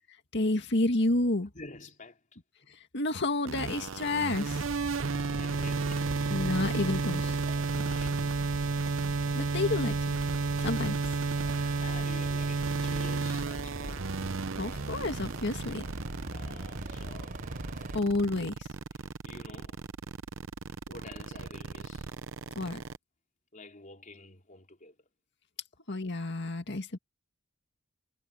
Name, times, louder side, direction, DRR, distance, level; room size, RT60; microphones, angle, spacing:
voice 1, 0.3-1.5 2.7-4.6 6.3-7.4 7.8-7.9 9.3-10.1 10.6-11.0 14.6-15.9 17.9-18.6 22.6-22.8 25.9-27.0, left 2 dB, 60° left, 2.1 m, -30 dB
voice 2, 1.5-2.2 2.6-2.8 5.2-6.1 7.8-8.4 11.8-14.2 16.3-17.4 19.2-19.8 20.9-22.0 23.5-25.0, left 3 dB, 40° left, 4.3 m, -48 dB
sound 1, 3.5-23.0, right 4 dB, 75° right, 0.8 m, -32 dB
sound 2, 4.5-18.0, equal, 45° right, 7.2 m, -41 dB
head